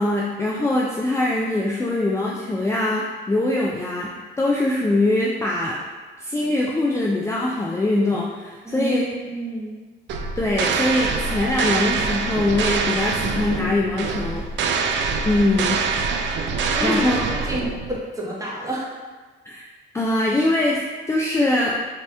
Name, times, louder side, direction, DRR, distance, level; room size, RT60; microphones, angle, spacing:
voice 1, 0.0-5.8 6.2-9.1 10.4-14.4 15.3-15.9 16.8-17.2 19.5-19.6 19.9-20.8 21.1-21.8, left 2 dB, 15° left, -3 dB, 0.4 m, -22 dB
voice 2, 8.6-9.7 16.7-17.0 17.3-18.9, equal, 15° right, -5 dB, 1.0 m, -29 dB
sound 1, 10.1-18.0, right 5 dB, 65° right, 0.4 m, -25 dB
3.2 x 2.9 x 3.3 m, 1.3 s
cardioid pair, 90°, 20 cm